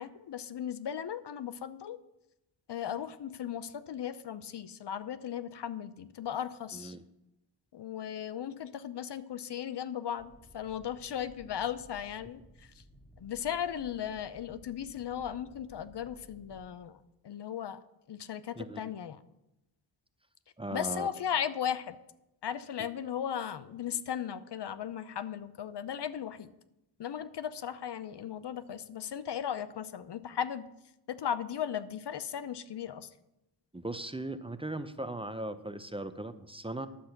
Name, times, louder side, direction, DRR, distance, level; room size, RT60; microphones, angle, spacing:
voice 1, 0.0-2.0 2.7-7.0 7.7-12.8 13.2-17.0 17.2-17.8 18.1-19.2 20.7-22.0 22.4-26.5 27.0-30.6 31.1-33.1, left 9 dB, 65° left, 14 dB, 0.7 m, -37 dB
voice 2, 6.7-7.0 18.6-18.9 20.6-21.1 22.8-22.9 33.7-36.9, right 1 dB, 10° right, 10 dB, 0.7 m, -38 dB
sound 1, 10.2-16.6, right 1 dB, 20° left, 4.7 m, -57 dB
10.5 x 7.6 x 5.8 m, 0.90 s
cardioid pair, 55°, 45 cm